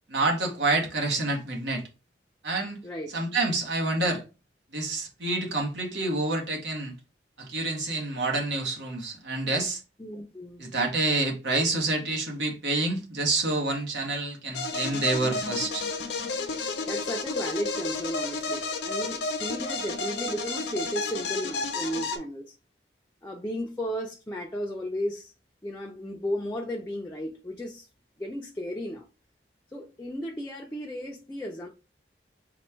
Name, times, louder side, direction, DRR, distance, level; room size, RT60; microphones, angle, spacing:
voice 1, 0.1-1.8 2.4-2.8 3.1-4.2 4.7-6.9 7.4-9.8 10.6-15.9, right 2 dB, 75° right, 1.2 m, -28 dB
voice 2, 2.8-3.2 10.0-10.6 16.9-22.5 23.2-25.3 25.6-27.9 28.2-29.1 29.7-31.7, equal, 15° left, 0.5 m, -34 dB
sound 1, 14.5-22.2, left 3 dB, 65° left, 0.8 m, -31 dB
4.2 x 2.3 x 4.3 m
head